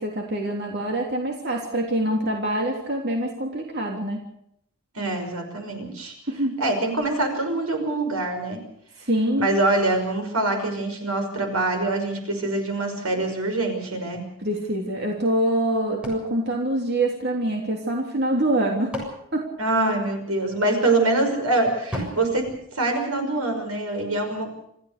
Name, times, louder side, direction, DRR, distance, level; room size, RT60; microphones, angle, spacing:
voice 1, 0.0-4.2 6.3-6.6 9.1-9.5 14.4-18.9 19.3-19.4, right 1 dB, 50° right, 1 dB, 3.3 m, -25 dB
voice 2, 4.9-6.1 6.6-8.6 9.4-14.3 19.6-24.5, right 2 dB, 85° right, 5 dB, 5.9 m, -24 dB
sound 1, 16.0-17.6 18.4-20.4 21.9-23.5, equal, 5° right, 7.1 m, -38 dB
27.0 x 15.0 x 6.8 m, 0.72 s
head